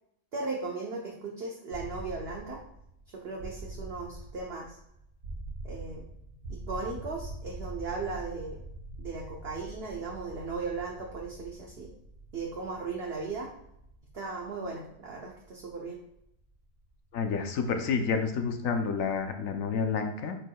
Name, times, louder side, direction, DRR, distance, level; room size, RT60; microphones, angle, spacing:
voice 1, 0.3-2.6 3.1-4.8 5.6-6.0 6.5-8.6 9.0-11.9 12.3-13.5 14.1-16.0, right 4 dB, 50° right, -1 dB, 1.0 m, -37 dB
sound 1, 1.7-17.5, right 2 dB, 90° right, 1.9 m, -44 dB
voice 2, 17.1-20.4, left 5 dB, 65° left, 5 dB, 1.0 m, -29 dB
9.1 x 4.7 x 2.3 m, 0.77 s
omnidirectional pair, 1.7 m